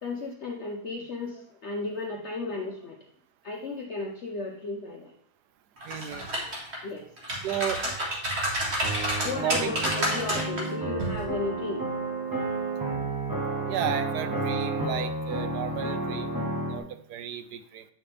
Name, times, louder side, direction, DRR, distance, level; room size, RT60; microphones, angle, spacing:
voice 1, 0.0-3.0 3.4-5.1 6.8-7.1 7.8-7.9 9.2-11.9, left 3 dB, 60° left, 2 dB, 0.7 m, -34 dB
sound 1, 5.8-6.8 7.2-10.6 11.0-11.2, right 1 dB, 40° right, 1.9 m, -29 dB
voice 2, 5.8-6.3 7.4-7.8 9.4-9.7 10.3-10.4 13.7-16.3 16.6-17.9, right 10 dB, 75° right, 11 dB, 1.1 m, -33 dB
sound 2, 8.8-16.8, right 2 dB, 15° right, 0.9 m, -31 dB
8.5 x 5.6 x 3.3 m, 0.65 s
omnidirectional pair, 1.9 m